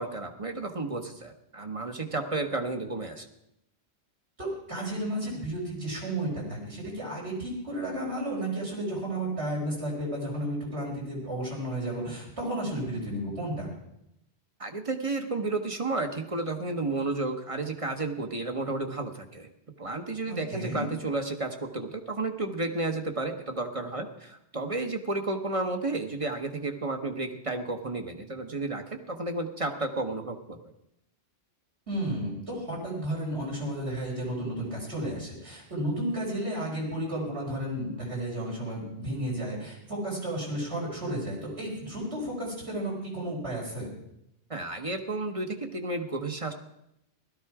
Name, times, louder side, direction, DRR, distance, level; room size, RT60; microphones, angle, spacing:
voice 1, 0.0-3.3 14.6-19.5 19.8-30.6 44.5-46.5, right 2 dB, 30° right, 5 dB, 1.1 m, -32 dB
voice 2, 4.4-13.7 20.3-20.8 31.9-43.9, right 1 dB, 80° right, -4 dB, 5.4 m, -33 dB
16.5 x 13.0 x 4.8 m, 0.81 s
omnidirectional pair, 1.1 m